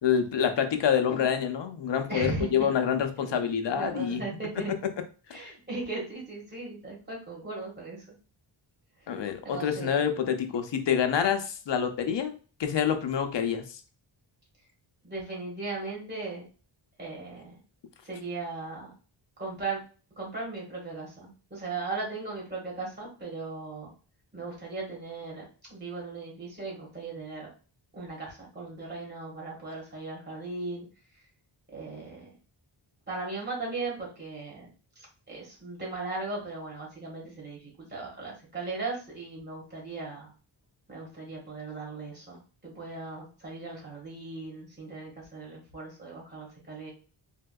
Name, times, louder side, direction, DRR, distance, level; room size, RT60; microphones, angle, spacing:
voice 1, 0.0-4.2 9.1-13.8, left 8 dB, 60° left, 7 dB, 0.7 m, -27 dB
voice 2, 2.1-2.7 3.1-4.7 5.3-8.2 9.0-10.0 15.0-16.4 17.0-17.6 18.0-18.9 19.4-19.8 20.2-23.9 24.3-25.4 25.7-27.5 27.9-30.8 31.7-32.3 33.1-34.7 34.9-40.3 40.9-46.9, right 3 dB, 20° right, -3 dB, 1.7 m, -37 dB
3.4 x 2.7 x 2.3 m, 0.37 s
cardioid pair, 60°, 48 cm